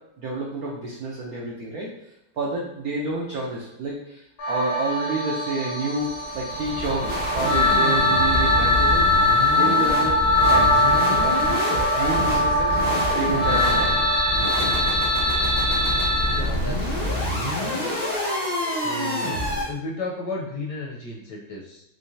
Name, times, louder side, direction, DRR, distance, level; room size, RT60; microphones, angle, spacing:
voice 1, 0.2-1.9 2.4-9.1 9.5-10.2 10.5-10.9 11.2-11.4 11.9-12.8 13.1-14.2, right 2 dB, 85° right, -3 dB, 0.8 m, -29 dB
sound 1, 4.4-16.4, left 1 dB, 90° left, 1.7 m, -22 dB
sound 2, 6.0-19.7, left 1 dB, 15° right, 0.4 m, -27 dB
voice 2, 16.2-17.1 18.6-19.4 19.7-21.8, left 2 dB, 70° left, -2 dB, 1.0 m, -34 dB
3.8 x 3.2 x 2.6 m, 0.85 s
omnidirectional pair, 2.3 m